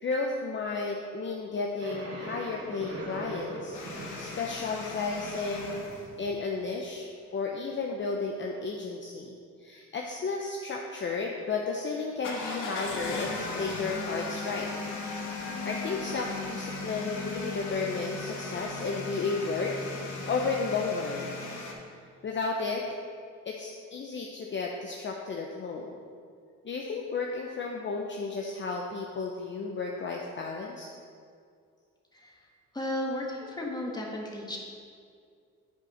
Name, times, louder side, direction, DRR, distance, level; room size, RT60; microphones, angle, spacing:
voice 1, 0.0-5.8 6.2-14.7 15.6-19.7 20.0-21.4 22.2-22.8 23.4-25.9 26.6-30.9, left 4 dB, 40° left, 0 dB, 0.7 m, -33 dB
sound 1, 1.8-6.8, right 1 dB, 50° right, 1.7 m, -42 dB
sound 2, 3.7-6.0 12.2-21.7, left 3 dB, 75° left, 1.4 m, -37 dB
voice 2, 32.1-32.5 32.7-34.6, left 1 dB, 15° left, -2 dB, 1.7 m, -34 dB
9.4 x 4.9 x 5.1 m, 2.3 s
cardioid pair, 90°, 30 cm